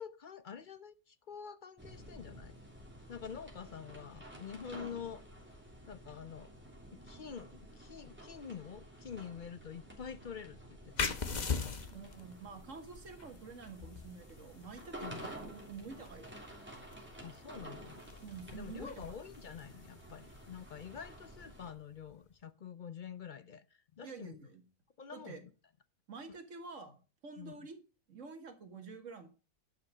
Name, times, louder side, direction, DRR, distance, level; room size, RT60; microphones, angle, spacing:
voice 1, 0.0-2.5 3.1-5.2 5.9-6.5 6.9-11.7 15.0-15.3 17.2-18.0 18.5-24.4 25.0-25.5 27.4-27.6, left 7 dB, 55° left, 0.5 m, -47 dB
sound 1, 1.8-21.7, right 1 dB, 5° right, 3.2 m, -52 dB
sound 2, 11.0-22.2, left 5 dB, 35° left, 0.9 m, -43 dB
voice 2, 11.9-16.3 18.2-19.2 24.0-24.6 25.1-25.4 26.1-27.0 27.2-27.8 28.1-29.3, right 4 dB, 60° right, 2.0 m, -48 dB
11.0 x 6.0 x 6.1 m
omnidirectional pair, 1.5 m